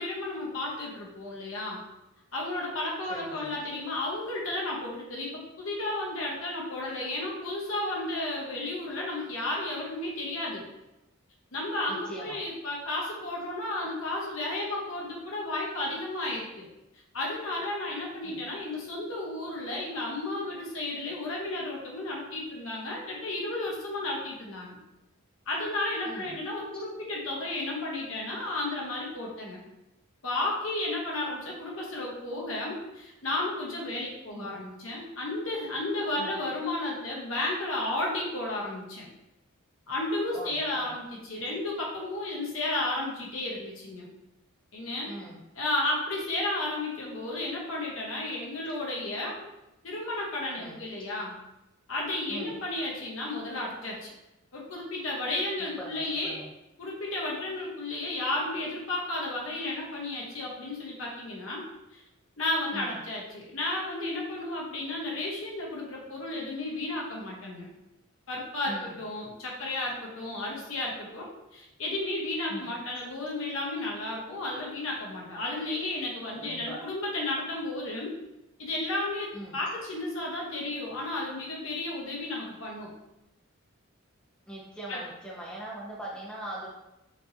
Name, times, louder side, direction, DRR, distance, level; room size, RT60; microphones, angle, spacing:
voice 1, 0.0-1.8 2.3-10.6 11.5-16.7 17.1-24.8 25.5-29.6 30.2-39.1 39.9-44.1 44.7-45.1 45.6-49.4 49.8-51.3 51.9-54.1 54.5-56.4 56.8-61.6 61.9-62.0 62.4-67.7 68.3-78.1 78.6-82.9 84.9-85.0, left 2 dB, 65° left, -3 dB, 0.9 m, -33 dB
voice 2, 3.1-3.6 11.9-12.4 18.2-18.4 26.1-26.3 34.3-34.5 36.2-36.3 40.3-40.9 45.1-45.4 50.6-50.8 52.3-52.5 55.6-56.5 62.7-63.0 68.7-68.9 72.5-72.7 76.3-76.8 79.3-79.6 84.5-86.7, right 1 dB, 5° left, -5 dB, 0.5 m, -41 dB
4.5 x 2.8 x 2.6 m, 0.94 s
head